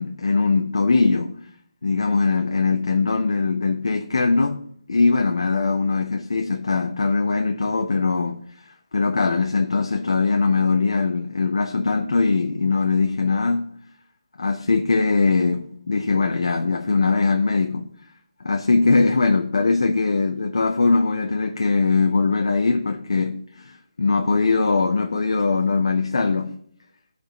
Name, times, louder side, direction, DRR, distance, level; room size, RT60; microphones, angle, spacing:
voice 1, 0.0-1.4 1.8-8.4 8.9-13.7 14.4-17.9 18.4-26.5, left 4 dB, 70° left, 1.1 m, -21 dB
14.5 x 5.1 x 5.9 m
hypercardioid pair, 165°, 3 cm